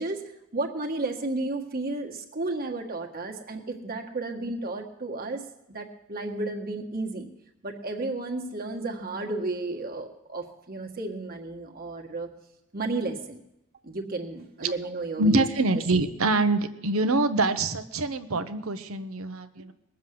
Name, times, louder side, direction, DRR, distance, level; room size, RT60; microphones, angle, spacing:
voice 1, 0.0-7.3 7.6-12.3 12.7-13.4 13.8-15.4, right 2 dB, 45° right, 2 dB, 1.7 m, -33 dB
voice 2, 15.2-19.7, right 2 dB, 85° right, 9 dB, 1.0 m, -25 dB
20.0 x 7.3 x 7.7 m, 0.86 s
head